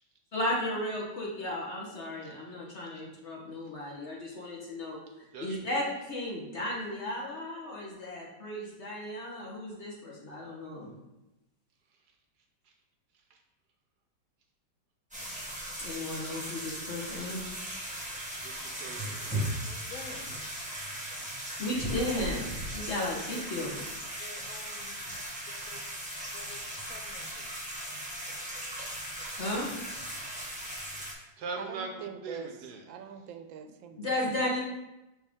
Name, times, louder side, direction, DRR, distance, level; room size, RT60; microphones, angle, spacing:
voice 1, 0.3-10.9 15.8-17.5 21.6-23.8 29.4-29.7 34.0-34.6, left 1 dB, 40° left, 1.3 m, -34 dB
voice 2, 5.3-5.7 18.4-19.5 31.4-32.8, right 4 dB, 65° right, 1.1 m, -41 dB
sound 1, 15.1-31.1, right 1 dB, 5° right, 1.1 m, -38 dB
voice 3, 19.7-20.4 24.2-24.9 25.7-25.9 26.3-27.6, left 4 dB, 70° left, 0.8 m, -49 dB
voice 4, 31.5-34.5, right 8 dB, 85° right, 1.3 m, -44 dB
6.3 x 4.4 x 3.6 m
omnidirectional pair, 2.1 m